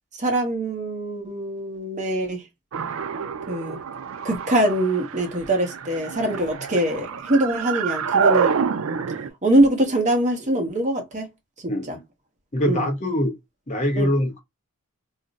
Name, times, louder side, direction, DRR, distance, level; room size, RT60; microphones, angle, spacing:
voice 1, 0.2-2.4 3.5-3.8 4.2-8.7 9.4-11.3 11.9-12.0 12.6-12.9 14.0-14.1, right 1 dB, 35° right, 0.8 m, -23 dB
sound 1, 2.7-9.3, right 6 dB, 65° right, 0.4 m, -27 dB
voice 2, 11.7-12.0 12.5-13.4 13.7-14.4, left 1 dB, 30° left, 0.7 m, -23 dB
2.4 x 2.0 x 3.9 m
head